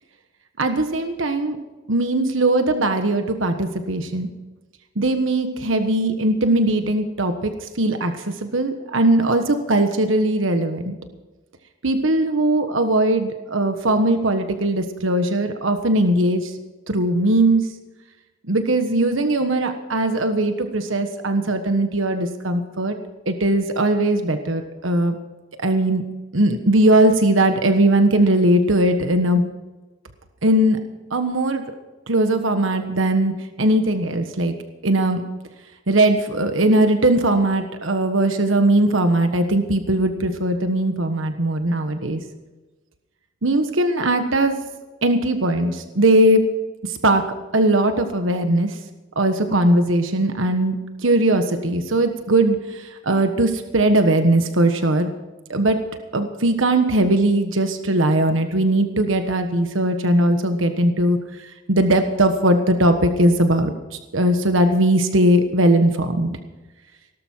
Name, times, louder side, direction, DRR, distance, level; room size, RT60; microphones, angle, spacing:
voice 1, 0.6-1.6 1.9-4.3 4.9-11.0 11.8-16.5 16.9-17.7 18.5-23.0 23.3-25.2 25.6-26.0 26.3-29.5 30.4-30.8 31.1-31.6 32.1-34.5 34.8-35.2 35.9-42.2 43.4-44.5 45.0-46.4 46.8-47.3 47.5-48.8 49.1-50.8 51.0-55.1 55.5-55.8 56.1-61.2 61.7-63.7 64.1-66.4, right 1 dB, 80° right, 7 dB, 1.4 m, -19 dB
17.5 x 13.0 x 4.6 m, 1.2 s
head